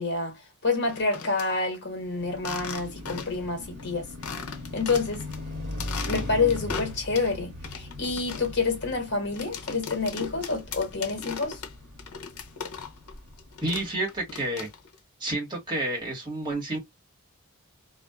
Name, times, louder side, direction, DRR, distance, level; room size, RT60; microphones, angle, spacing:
voice 1, 0.0-4.1 4.7-5.2 6.1-11.6, left 4 dB, 50° left, 1.2 m, -28 dB
sound 1, 0.8-1.5 2.4-3.5 3.8-3.9 4.2-5.4 5.7-7.3 7.6-13.1 13.4-15.0, left 6 dB, 80° left, 0.7 m, -38 dB
Car passing by, 1.9-14.2, left 2 dB, 50° right, 1.2 m, -40 dB
voice 2, 13.6-14.7 15.2-16.8, right 1 dB, 20° right, 1.4 m, -30 dB
2.5 x 2.4 x 2.2 m
head